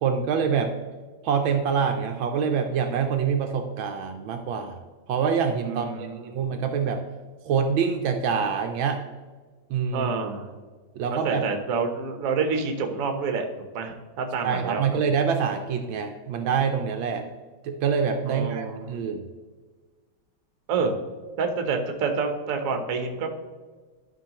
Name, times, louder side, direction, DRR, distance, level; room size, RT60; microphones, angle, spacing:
voice 1, 0.0-0.7 1.2-4.8 5.1-7.0 7.4-9.0 9.7-10.1 11.0-11.5 14.4-17.3 17.6-19.2, right 6 dB, 75° right, 5 dB, 1.3 m, -25 dB
voice 2, 5.7-6.4 9.9-10.5 11.1-13.5 13.7-15.0 18.3-18.9 20.7-20.9 21.4-23.3, right 5 dB, 50° right, 5 dB, 1.1 m, -28 dB
12.0 x 5.7 x 3.0 m, 1.4 s
omnidirectional pair, 2.3 m